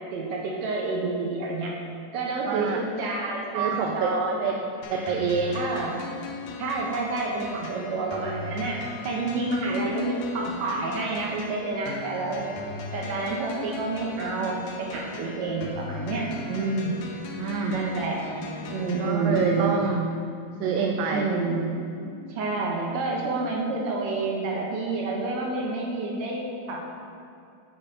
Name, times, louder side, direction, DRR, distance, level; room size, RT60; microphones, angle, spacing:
voice 1, 0.1-1.7 2.1-4.5 5.5-6.0 6.6-12.5 12.9-16.9 17.7-18.2 18.6-19.8 21.1-21.7 22.0-26.8, right 3 dB, 70° right, -2 dB, 1.8 m, -29 dB
voice 2, 2.5-2.8 3.5-4.1 4.4-4.6 4.9-5.6 16.9-17.0 17.4-17.8 19.0-20.1 20.6-21.3, right 5 dB, 90° right, 2 dB, 2.3 m, -26 dB
sound 1, 4.8-19.8, left 3 dB, 90° left, 2.4 m, -38 dB
7.6 x 6.7 x 4.3 m, 2.5 s
omnidirectional pair, 3.8 m